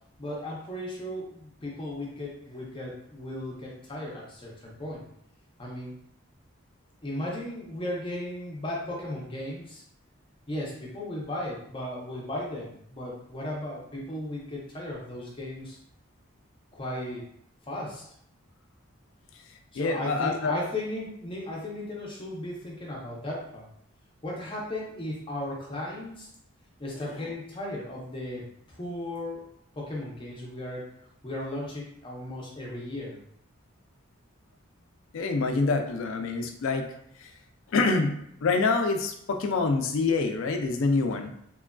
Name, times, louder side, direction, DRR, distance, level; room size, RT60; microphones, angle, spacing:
voice 1, 0.2-5.0 5.6-5.9 7.0-9.8 10.5-15.8 16.7-17.2 17.7-18.0 19.7-23.7 24.2-26.3 26.8-29.5 29.8-30.9 31.2-33.2, left 1 dB, 25° left, -3 dB, 0.6 m, -36 dB
voice 2, 19.8-20.5 35.1-36.9 37.7-41.3, left 3 dB, 70° left, 5 dB, 0.3 m, -26 dB
3.0 x 2.4 x 2.2 m, 0.72 s
head